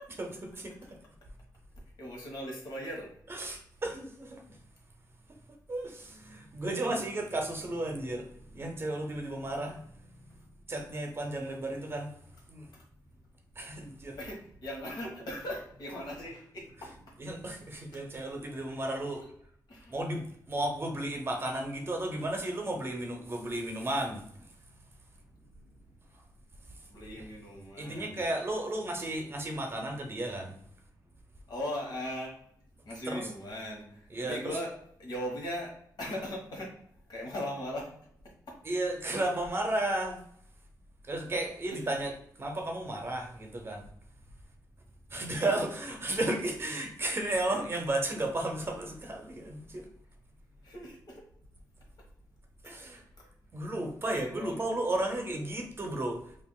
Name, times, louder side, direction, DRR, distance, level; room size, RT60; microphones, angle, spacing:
voice 1, 0.2-0.8 3.3-4.6 5.7-9.8 10.7-12.1 12.5-12.7 13.6-14.2 17.2-19.2 19.9-24.5 27.2-27.3 27.8-30.6 33.1-33.3 34.1-34.6 38.6-40.2 41.1-42.1 42.4-43.8 45.1-49.9 52.6-53.0 53.5-56.4, right 1 dB, 30° right, 2 dB, 0.7 m, -33 dB
voice 2, 2.0-3.1 12.7-12.8 14.1-17.1 17.9-18.0 19.0-19.2 19.7-19.9 24.7-24.8 25.3-26.0 26.7-28.3 31.5-32.3 32.8-34.7 35.0-35.7 36.0-36.7 37.1-37.9 38.2-38.5 41.7-42.0 50.6-51.2 53.2-53.3 54.0-54.6, equal, 65° left, -2 dB, 1.3 m, -39 dB
5.7 x 2.4 x 2.3 m, 0.67 s
wide cardioid pair, 140°, 8 cm